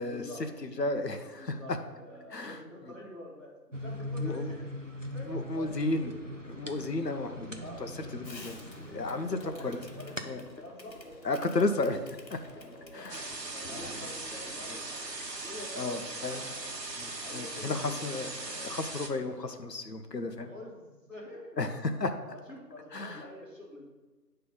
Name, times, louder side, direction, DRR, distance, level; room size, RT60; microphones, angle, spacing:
voice 1, 0.0-0.4 1.4-4.7 5.1-5.7 6.1-6.2 7.6-8.2 8.7-11.5 12.4-15.0 15.4-16.6 17.2-18.0 20.3-21.6 22.2-23.9, left 1 dB, 50° left, -4 dB, 2.1 m, -47 dB
voice 2, 0.6-1.6 2.3-2.6 4.2-4.5 5.3-6.1 6.5-8.6 8.9-9.4 9.6-9.8 10.2-10.4 11.2-12.4 12.9-13.2 15.8-16.4 17.0-20.5 21.6-21.7 22.0-22.1 22.9-23.2, left 2 dB, 75° left, 7 dB, 0.9 m, -33 dB
sound 1, 3.7-10.2, left 1 dB, 50° right, 0.5 m, -40 dB
Fireworks, 8.2-15.1, left 1 dB, 90° left, 1.3 m, -51 dB
sound 2, 13.1-19.1, right 2 dB, 80° right, 1.2 m, -39 dB
8.9 x 3.4 x 5.4 m, 1.2 s
figure-of-eight pair, 180°, 50 cm